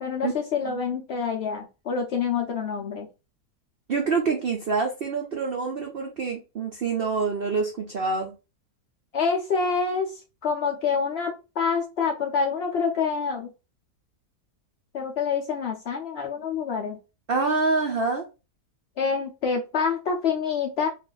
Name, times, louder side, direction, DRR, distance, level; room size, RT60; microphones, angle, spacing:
voice 1, 0.0-3.1 9.1-10.1 10.4-13.5 14.9-17.0 19.0-20.9, left 5 dB, 70° left, 0.6 m, -27 dB
voice 2, 3.9-8.3 17.3-18.3, right 4 dB, 70° right, 0.5 m, -26 dB
2.6 x 2.4 x 3.8 m
omnidirectional pair, 1.7 m